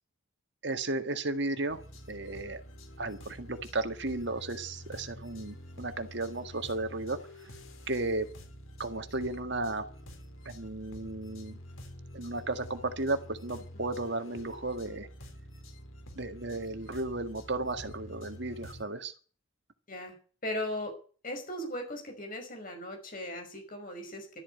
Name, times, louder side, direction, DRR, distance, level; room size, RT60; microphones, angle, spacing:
voice 1, 0.6-1.8 2.1-2.6 3.0-7.2 7.9-8.3 8.8-9.9 10.5-11.6 12.1-15.1 16.2-19.1, right 2 dB, 55° right, 9 dB, 1.7 m, -34 dB
sound 1, 1.7-18.8, equal, 85° left, 4.0 m, -48 dB
voice 2, 20.4-20.9 21.2-24.4, left 1 dB, 40° left, 4 dB, 5.5 m, -37 dB
13.0 x 8.5 x 9.5 m, 0.40 s
head